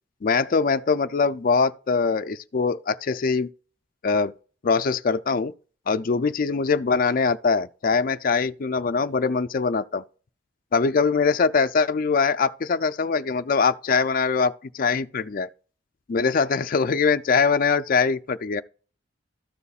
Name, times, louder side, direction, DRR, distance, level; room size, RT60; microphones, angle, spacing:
voice 1, 0.2-3.5 4.0-4.3 4.6-5.5 5.9-10.0 10.7-15.5 16.1-18.6, left 5 dB, 50° left, 0.4 m, -22 dB
13.5 x 6.9 x 2.4 m
head